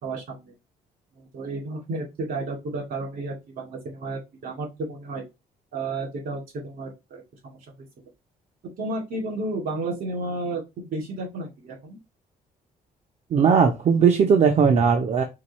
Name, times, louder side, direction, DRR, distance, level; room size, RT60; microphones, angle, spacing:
voice 1, 0.0-0.5 1.2-5.2 5.7-7.8 8.8-12.0, right 2 dB, 70° right, 0 dB, 2.3 m, -32 dB
voice 2, 13.3-15.2, right 6 dB, 45° right, 4 dB, 0.6 m, -18 dB
4.7 x 2.3 x 4.1 m, 0.24 s
cardioid pair, 140°, 15 cm